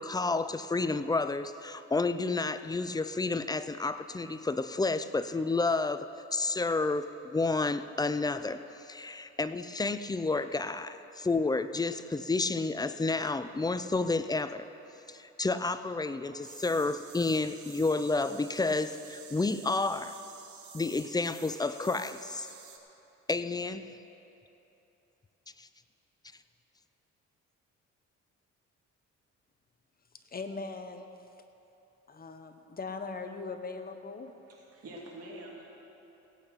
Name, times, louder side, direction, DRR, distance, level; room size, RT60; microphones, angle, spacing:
voice 1, 0.0-8.6 8.9-14.7 15.1-20.2 20.7-22.5 23.3-23.9 25.6-25.7, left 3 dB, 15° left, 12 dB, 0.5 m, -30 dB
sound 1, 16.4-22.8, right 7 dB, 70° right, 1.3 m, -50 dB
voice 2, 30.3-31.1 32.1-34.3, left 4 dB, 30° left, 7 dB, 1.1 m, -40 dB
voice 3, 34.5-35.6, right 1 dB, 50° right, -4 dB, 3.3 m, -46 dB
16.5 x 8.7 x 5.7 m, 3.0 s
cardioid pair, 90°, 30 cm